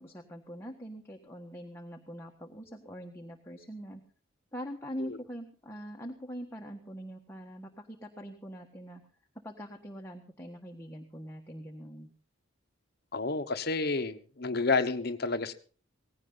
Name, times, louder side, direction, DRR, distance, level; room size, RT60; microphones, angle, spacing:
voice 1, 0.0-4.0 4.5-9.0 9.4-12.1, equal, 10° left, 1 dB, 1.4 m, -43 dB
voice 2, 13.1-15.5, left 3 dB, 50° left, 10 dB, 1.1 m, -30 dB
18.5 x 16.5 x 4.0 m, 0.40 s
head